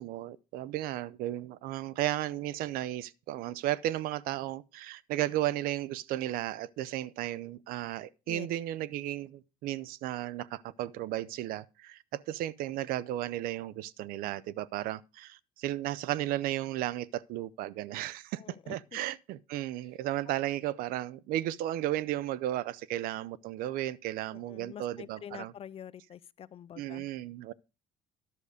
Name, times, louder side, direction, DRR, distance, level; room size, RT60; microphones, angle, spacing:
voice 1, 0.0-25.5 26.8-27.5, right 14 dB, 75° right, 0.6 m, -34 dB
voice 2, 18.4-19.0 24.3-27.1, left 9 dB, 40° left, 0.5 m, -46 dB
11.0 x 6.5 x 4.9 m
cardioid pair, 100°, 15 cm